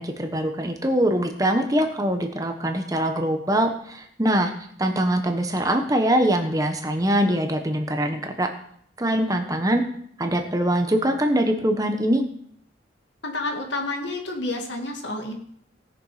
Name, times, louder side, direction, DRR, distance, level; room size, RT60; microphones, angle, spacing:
voice 1, 0.0-4.5 4.8-8.5 9.0-9.8 10.2-12.2, right 1 dB, 20° right, 5 dB, 1.1 m, -23 dB
voice 2, 13.2-15.4, left 2 dB, 75° left, 2 dB, 2.1 m, -29 dB
18.0 x 6.7 x 5.0 m, 0.65 s
head